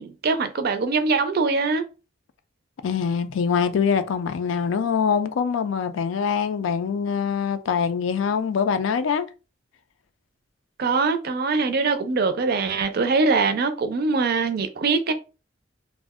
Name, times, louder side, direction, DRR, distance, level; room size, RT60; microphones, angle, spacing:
voice 1, 0.0-1.8 10.8-15.1, right 4 dB, 55° right, 0.4 m, -22 dB
voice 2, 2.8-9.3, left 6 dB, 80° left, 0.4 m, -24 dB
2.5 x 2.0 x 3.5 m
head